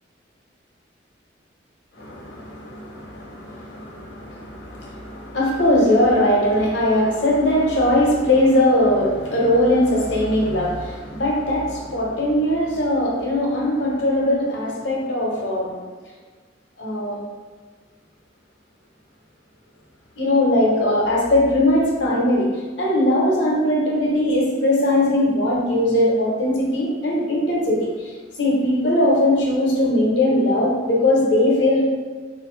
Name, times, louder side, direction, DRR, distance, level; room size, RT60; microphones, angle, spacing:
voice 1, 2.0-15.8 16.8-17.2 20.2-22.5 22.8-28.1 28.4-31.9, left 1 dB, 70° left, -3 dB, 1.0 m, -20 dB
3.8 x 2.7 x 3.2 m, 1.4 s
head